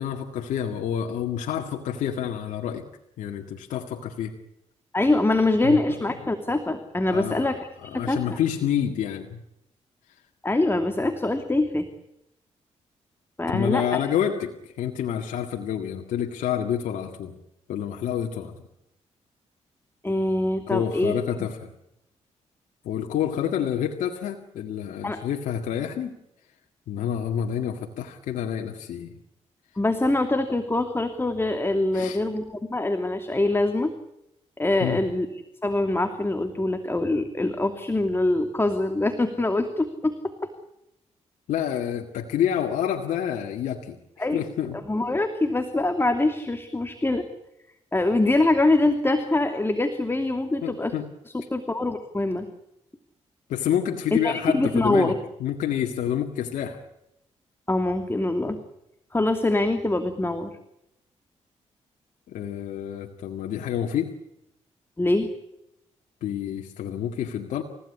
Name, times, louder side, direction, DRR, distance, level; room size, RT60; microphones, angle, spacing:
voice 1, 0.0-2.8 3.2-4.3 5.6-5.8 7.1-7.5 7.8-9.4 13.5-17.3 17.7-18.5 20.7-21.7 22.8-26.2 26.9-29.2 31.9-32.2 34.8-35.0 41.5-44.8 50.6-51.1 53.5-56.8 62.3-64.2 66.2-67.6, left 9 dB, 90° left, 2 dB, 2.1 m, -28 dB
voice 2, 4.9-8.4 10.4-11.9 13.4-14.0 20.0-21.1 21.4-21.5 25.0-25.2 29.8-33.9 34.6-35.3 35.6-40.1 40.4-40.5 44.2-44.4 44.9-47.3 47.9-50.9 51.3-52.5 54.1-55.1 57.7-58.6 59.1-60.5 65.0-65.3, left 2 dB, 20° left, 7 dB, 2.8 m, -24 dB
29.0 x 16.5 x 10.0 m, 0.86 s
cardioid pair, 70°, 13 cm